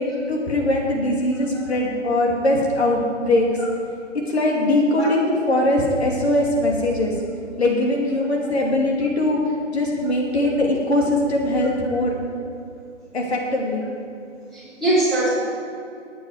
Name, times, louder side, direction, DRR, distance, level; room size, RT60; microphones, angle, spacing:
voice 1, 0.0-3.5 4.3-7.1 7.6-9.4 9.7-12.2 13.1-13.8, left 1 dB, 60° left, -2 dB, 2.8 m, -21 dB
voice 2, 14.5-15.3, right 2 dB, ahead, -12 dB, 3.4 m, -21 dB
18.0 x 9.1 x 5.0 m, 2.4 s
figure-of-eight pair, 150°, 37 cm